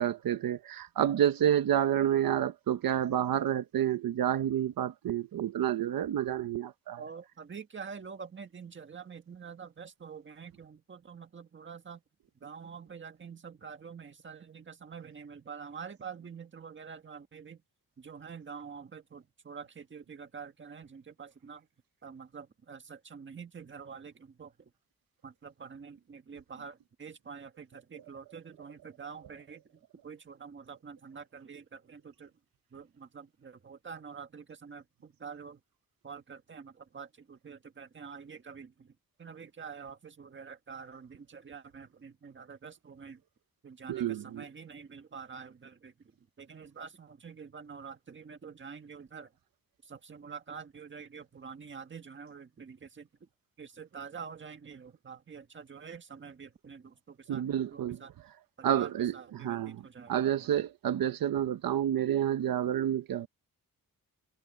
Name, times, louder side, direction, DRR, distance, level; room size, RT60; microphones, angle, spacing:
voice 1, 0.0-7.0 43.9-44.4 57.3-58.0 58.6-59.8 60.1-63.3, right 10 dB, 80° right, 0.9 m, -29 dB
voice 2, 7.0-12.0 12.4-17.6 18.0-21.7 22.0-24.7 25.2-32.3 32.7-35.6 36.0-38.9 39.2-43.2 43.6-49.3 49.8-53.3 53.6-58.1 58.6-60.6, right 6 dB, 35° right, 1.7 m, -47 dB
wide cardioid pair, 170°, 34 cm